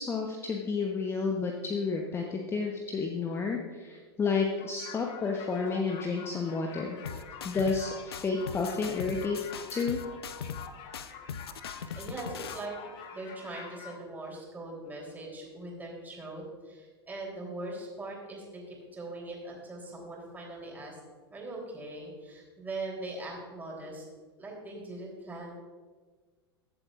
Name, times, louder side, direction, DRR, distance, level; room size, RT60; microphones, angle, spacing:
voice 1, 0.0-9.4 9.7-10.0, left 4 dB, 20° left, 1 dB, 1.0 m, -31 dB
sound 1, 4.6-14.0, left 7 dB, 40° left, 1.3 m, -47 dB
sound 2, 7.1-7.9 8.1-10.7 10.9-12.7, left 7 dB, 65° left, 0.6 m, -40 dB
voice 2, 12.0-21.0 21.3-24.1 24.4-25.5, right 2 dB, 15° right, -2 dB, 3.4 m, -41 dB
22.0 x 7.7 x 2.5 m, 1.4 s
figure-of-eight pair, 90°, 14 cm